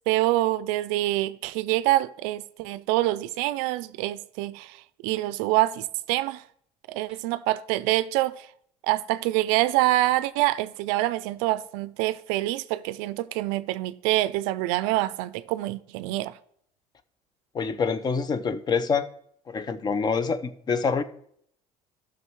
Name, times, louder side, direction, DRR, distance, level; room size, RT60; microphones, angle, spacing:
voice 1, 0.1-6.4 6.9-8.5 8.8-16.4, right 17 dB, 85° right, 0.4 m, -26 dB
voice 2, 17.5-19.1 19.5-21.0, left 5 dB, 30° left, 0.6 m, -26 dB
12.0 x 6.1 x 3.1 m
supercardioid pair, 105°, 13 cm